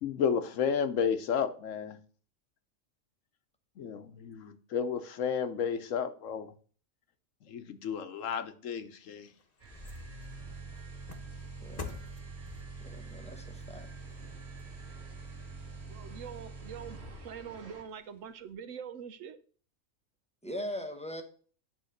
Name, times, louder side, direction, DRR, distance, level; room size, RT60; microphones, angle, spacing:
voice 1, 0.0-2.0 3.8-6.5 7.4-9.3, left 7 dB, 70° left, 1.1 m, -32 dB
sound 1, 8.8-15.3 15.7-15.8, left 5 dB, 35° left, 0.9 m, -50 dB
sound 2, 9.6-17.8, right 4 dB, 55° right, 1.7 m, -55 dB
sound 3, 9.7-17.6, right 3 dB, 35° right, 1.9 m, -45 dB
voice 2, 11.6-12.0 12.8-13.9 20.4-21.2, equal, 5° left, 0.7 m, -40 dB
voice 3, 15.9-19.4, right 7 dB, 70° right, 1.1 m, -44 dB
9.2 x 3.6 x 6.4 m
omnidirectional pair, 1.4 m